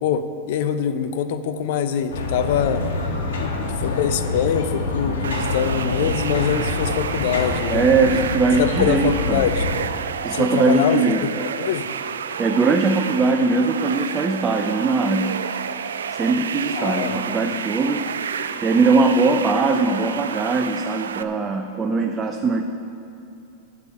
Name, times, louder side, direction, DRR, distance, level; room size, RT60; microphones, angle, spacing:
voice 1, 0.0-2.8 3.7-8.3 8.6-9.7 10.3-11.9 16.7-17.2, left 8 dB, 65° left, 10 dB, 0.7 m, -24 dB
sound 1, 2.1-9.8, left 3 dB, 80° left, 1.4 m, -26 dB
sound 2, 5.2-21.2, right 7 dB, 85° right, 0.4 m, -30 dB
voice 2, 7.7-9.4 10.2-11.2 12.4-15.3 16.1-18.1 18.6-22.6, right 3 dB, 25° right, 4 dB, 0.6 m, -20 dB
8.1 x 7.2 x 8.5 m, 2.6 s
hypercardioid pair, 110°, 0 cm